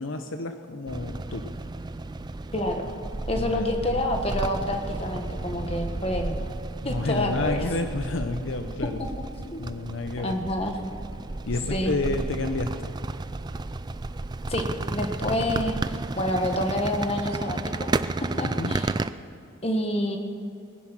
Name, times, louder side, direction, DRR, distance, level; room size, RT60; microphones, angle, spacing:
voice 1, 0.0-1.5 3.3-4.0 6.8-9.0 9.6-10.3 11.5-12.9 18.4-18.8, left 2 dB, 60° left, 7 dB, 0.8 m, -30 dB
sound 1, 0.9-19.1, right 2 dB, 20° right, 0.3 m, -32 dB
voice 2, 2.5-2.9 3.3-6.4 6.8-7.6 9.5-9.6 10.2-10.8 11.7-11.9 14.5-17.9 18.4-18.9 19.6-20.2, left 1 dB, 25° left, 4 dB, 1.4 m, -28 dB
19.5 x 10.5 x 6.0 m, 2.7 s
head